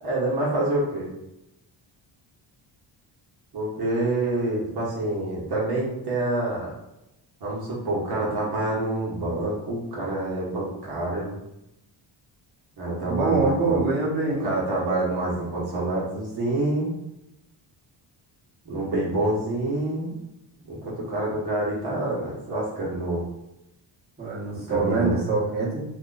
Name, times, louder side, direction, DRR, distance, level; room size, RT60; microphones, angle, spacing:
voice 1, 0.0-1.1 3.5-6.7 7.4-11.3 12.8-13.8 14.3-16.9 18.6-20.1 20.7-23.2 24.7-25.2, right 2 dB, 55° right, -6 dB, 1.2 m, -27 dB
voice 2, 13.1-14.5 24.2-25.8, right 3 dB, 20° right, -7 dB, 1.2 m, -24 dB
3.0 x 2.3 x 3.8 m, 0.89 s
cardioid pair, 105°, 48 cm